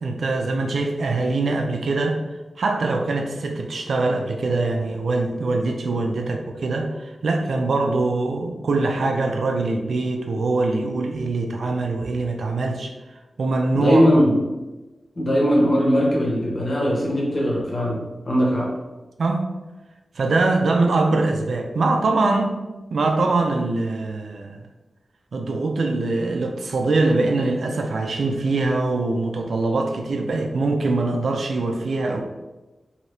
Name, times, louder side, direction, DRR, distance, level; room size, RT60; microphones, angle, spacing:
voice 1, 0.0-2.2 2.6-12.9 13.4-14.0 19.2-19.5 20.2-22.6 22.9-24.7 25.3-32.2, right 3 dB, 80° right, 3 dB, 0.4 m, -23 dB
voice 2, 13.7-14.4 15.2-18.7, equal, 40° left, -4 dB, 1.0 m, -20 dB
2.7 x 2.7 x 3.3 m, 1.1 s
wide cardioid pair, 105°, 0 cm